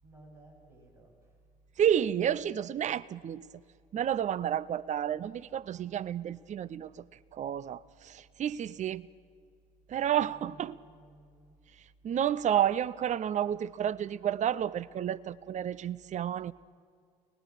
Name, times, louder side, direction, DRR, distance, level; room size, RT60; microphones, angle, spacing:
voice 1, 0.0-1.1 10.3-11.6, right 2 dB, 90° right, 7.2 m, -56 dB
voice 2, 1.8-3.5 3.9-7.0 7.3-9.1 9.9-10.8 12.0-16.5, right 9 dB, 40° right, 0.6 m, -30 dB
28.0 x 20.0 x 6.6 m
hypercardioid pair, 55°, 19 cm